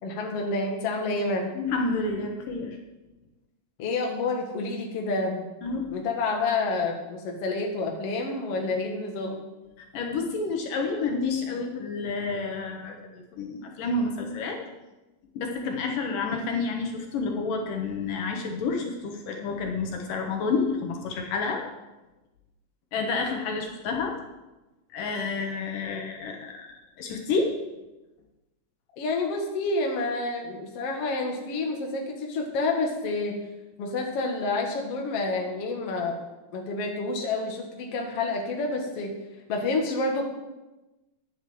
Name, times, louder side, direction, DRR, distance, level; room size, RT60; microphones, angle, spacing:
voice 1, 0.0-1.5 3.8-5.5 5.9-9.4 29.0-33.4 33.8-36.2 36.5-39.1 39.5-40.3, left 3 dB, 50° left, 1 dB, 2.5 m, -29 dB
voice 2, 1.5-2.8 5.6-6.0 9.9-14.6 15.3-21.7 22.9-24.2 24.9-26.7 27.0-27.6, left 4 dB, 75° left, 2 dB, 2.9 m, -29 dB
11.0 x 8.6 x 7.8 m, 1.1 s
omnidirectional pair, 4.0 m